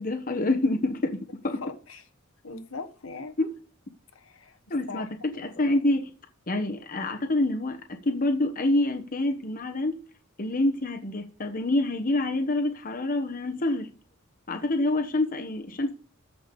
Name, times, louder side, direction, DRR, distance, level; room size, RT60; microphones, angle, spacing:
voice 1, 0.0-1.6 3.4-3.5 4.7-5.1 5.4-6.1 6.5-9.9 10.4-13.9 14.5-15.9, left 2 dB, 45° left, 1.2 m, -27 dB
voice 2, 1.6-2.0 2.4-3.3 4.1-4.6 4.9-5.1, left 4 dB, 70° left, 1.3 m, -39 dB
14.0 x 5.0 x 5.3 m
head